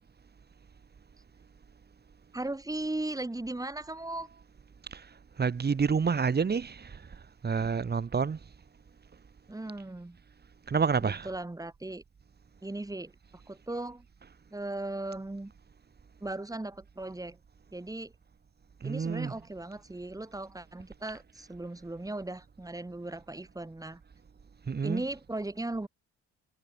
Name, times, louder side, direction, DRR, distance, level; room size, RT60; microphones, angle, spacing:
voice 1, 2.3-4.3 9.5-10.2 11.0-12.0 12.6-13.1 13.5-14.1 14.5-15.5 16.2-17.4 17.7-18.1 18.8-24.0 24.8-25.9, right 2 dB, 10° right, 2.0 m, -37 dB
voice 2, 5.4-8.4 10.7-11.3 18.8-19.4 24.7-25.1, right 5 dB, 35° right, 1.9 m, -29 dB
cardioid pair, 90°, 30 cm